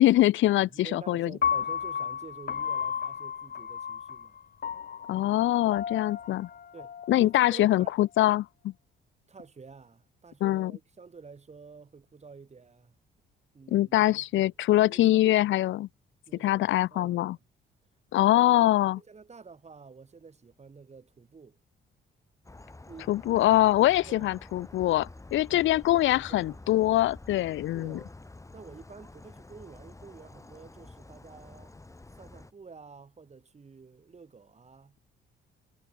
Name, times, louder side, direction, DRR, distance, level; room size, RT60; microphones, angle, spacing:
voice 1, 0.0-1.3 5.1-6.5 7.1-8.7 10.4-10.7 13.7-15.9 16.4-17.4 18.1-19.0 23.1-28.0, left 15 dB, 75° left, 0.7 m, -23 dB
voice 2, 0.6-4.4 6.7-7.9 9.3-13.0 13.5-14.5 14.9-15.4 16.3-17.4 18.3-21.6 22.9-23.1 24.0-24.3 25.5-26.7 27.7-28.1 28.5-31.8 32.2-35.0, right 5 dB, 35° right, 5.9 m, -49 dB
Piano, 1.4-7.6, left 7 dB, 50° left, 2.8 m, -33 dB
sound 1, 22.4-32.5, left 2 dB, 15° left, 3.3 m, -48 dB
cardioid pair, 90°, 20 cm